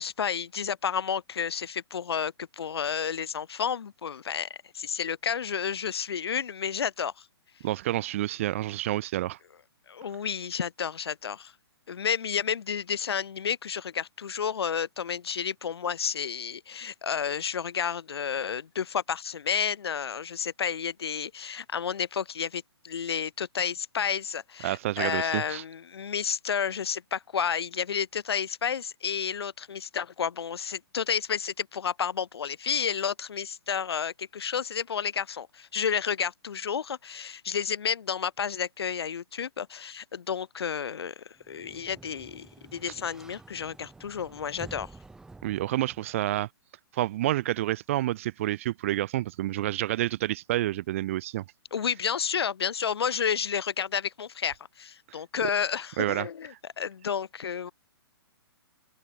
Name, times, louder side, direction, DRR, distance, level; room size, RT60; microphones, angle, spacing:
voice 1, 0.0-7.3 9.9-11.5 11.9-44.9 51.7-57.7, left 7 dB, 70° left, 2.3 m, -31 dB
voice 2, 7.6-9.4 24.6-25.6 45.4-46.5 46.9-51.4 55.1-55.2 55.4-55.5 56.0-56.3, right 15 dB, 30° right, 0.6 m, -29 dB
Sliding door, 41.4-46.2, right 3 dB, 5° right, 6.1 m, -50 dB
hypercardioid pair, 165°, 14 cm